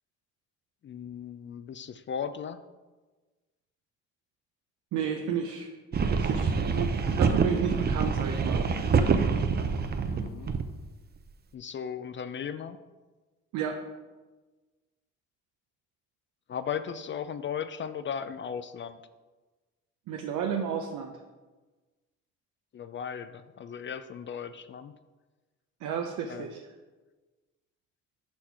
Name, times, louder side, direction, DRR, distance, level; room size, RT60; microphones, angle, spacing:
voice 1, 0.8-2.6 10.0-10.5 11.5-12.8 16.5-19.0 22.7-25.0 26.3-26.5, left 7 dB, 40° left, 11 dB, 0.4 m, -36 dB
voice 2, 4.9-5.7 6.1-8.7 13.5-13.8 20.1-21.1 25.8-26.6, right 7 dB, 80° right, 3 dB, 0.7 m, -32 dB
sound 1, 5.9-10.7, right 5 dB, 35° right, 0.6 m, -26 dB
6.0 x 4.4 x 5.6 m, 1.3 s
cardioid pair, 90°, 30 cm